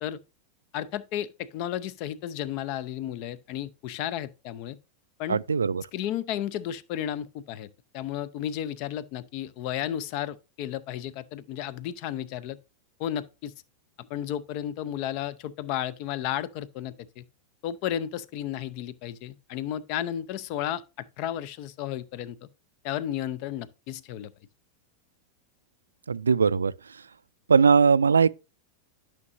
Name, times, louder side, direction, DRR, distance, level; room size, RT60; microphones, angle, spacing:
voice 1, 0.7-4.8 5.2-5.4 5.9-7.7 7.9-12.6 13.0-13.5 14.0-17.2 17.6-22.5 22.8-24.3, left 11 dB, 45° left, 0.6 m, -33 dB
voice 2, 5.3-5.8 26.1-26.7 27.5-28.3, right 5 dB, 75° right, 0.3 m, -20 dB
12.0 x 5.8 x 2.6 m
figure-of-eight pair, 90°, 0 cm